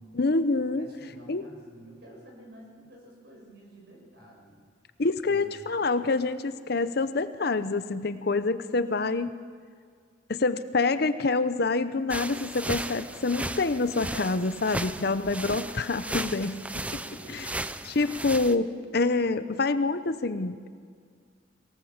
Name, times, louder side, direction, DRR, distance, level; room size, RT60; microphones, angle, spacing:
voice 1, 0.1-0.9 1.3-1.4 5.0-9.3 10.3-16.8 17.8-18.7 18.9-20.6, left 3 dB, 55° left, 12 dB, 0.7 m, -26 dB
voice 2, 0.7-4.6 5.2-5.7 16.9-17.5, right 1 dB, 60° right, -1 dB, 6.7 m, -50 dB
sound 1, 12.1-18.5, right 1 dB, 5° right, 0.5 m, -35 dB
23.5 x 17.5 x 7.3 m, 2.1 s
head